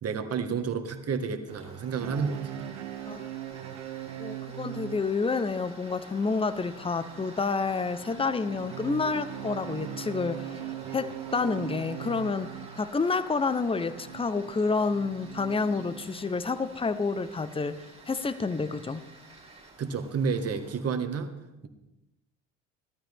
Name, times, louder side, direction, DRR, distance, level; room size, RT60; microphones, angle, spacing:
voice 1, 0.0-2.6 19.8-21.3, right 5 dB, 40° right, 7 dB, 1.9 m, -30 dB
Tools, 1.5-20.8, right 2 dB, 15° right, 3.6 m, -49 dB
sound 1, 1.9-16.5 17.0-17.3 17.7-17.8 18.2-18.3, right 12 dB, 85° right, 0.8 m, -41 dB
voice 2, 4.2-10.5 10.9-12.5 12.8-17.8 18.1-19.1, left 4 dB, 15° left, 13 dB, 0.9 m, -29 dB
18.0 x 12.5 x 3.7 m, 0.95 s
hypercardioid pair, 65°, 36 cm